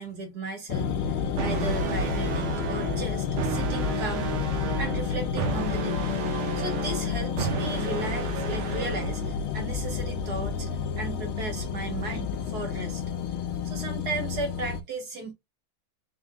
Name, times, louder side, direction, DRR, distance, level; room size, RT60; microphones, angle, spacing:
voice 1, 0.0-6.0 6.6-10.7 11.0-13.0 13.6-15.3, right 2 dB, 50° right, 1.8 m, -36 dB
sound 1, 0.7-14.8, left 6 dB, 90° left, 1.6 m, -30 dB
sound 2, 1.3-9.3, right 8 dB, 80° right, 1.6 m, -33 dB
4.3 x 3.5 x 2.4 m
omnidirectional pair, 2.3 m